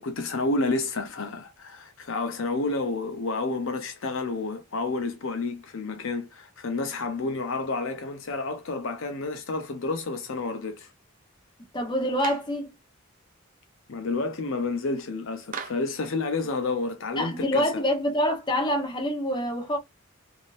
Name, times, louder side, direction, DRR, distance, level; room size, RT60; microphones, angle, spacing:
voice 1, 0.0-10.9 13.9-17.7, left 3 dB, 65° left, 0.6 m, -30 dB
voice 2, 11.7-12.7 17.2-19.8, equal, 20° left, 0.9 m, -26 dB
Clapping, 12.2-12.6 15.5-15.9, right 6 dB, 40° right, 0.5 m, -37 dB
3.6 x 2.6 x 2.5 m
head